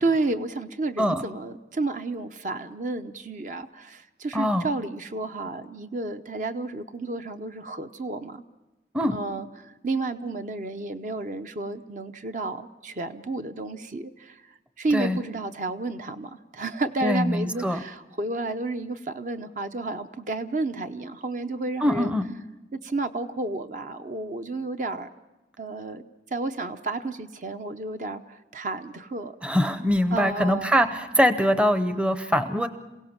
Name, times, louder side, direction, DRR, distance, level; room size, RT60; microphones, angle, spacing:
voice 1, 0.0-8.4 9.1-14.5 14.8-22.1 22.8-25.1 25.6-26.0 26.3-29.3 30.1-30.7, right 2 dB, 45° right, 8 dB, 0.7 m, -31 dB
voice 2, 4.3-4.7 8.9-9.2 14.9-15.2 17.0-17.8 21.8-22.3 29.4-32.7, equal, 5° right, 10 dB, 0.7 m, -23 dB
28.0 x 17.0 x 5.9 m, 1.0 s
head